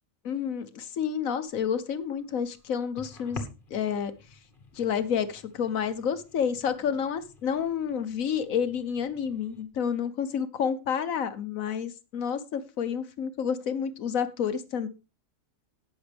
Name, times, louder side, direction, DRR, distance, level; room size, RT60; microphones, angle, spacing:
voice 1, 0.2-4.1 4.7-14.9, left 7 dB, 85° left, 12 dB, 1.5 m, -29 dB
sound 1, 1.4-9.6, left 2 dB, 40° left, 1.7 m, -48 dB
18.0 x 7.1 x 3.4 m, 0.30 s
omnidirectional pair, 1.4 m